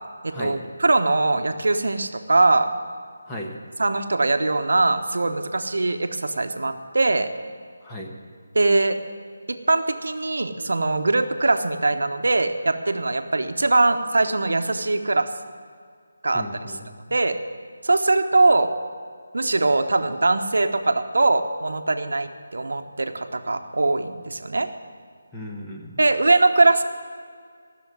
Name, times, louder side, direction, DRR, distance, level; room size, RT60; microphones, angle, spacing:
voice 1, 0.2-2.7 3.8-7.3 8.5-9.0 9.5-15.3 16.2-16.5 17.1-17.4 17.8-18.7 19.3-24.7 26.0-26.8, right 2 dB, 75° right, 8 dB, 1.0 m, -21 dB
voice 2, 3.3-3.6 7.8-8.1 16.3-16.9 25.3-26.0, left 1 dB, 10° left, -1 dB, 1.3 m, -35 dB
15.0 x 6.9 x 9.3 m, 2.1 s
figure-of-eight pair, 165°, 0 cm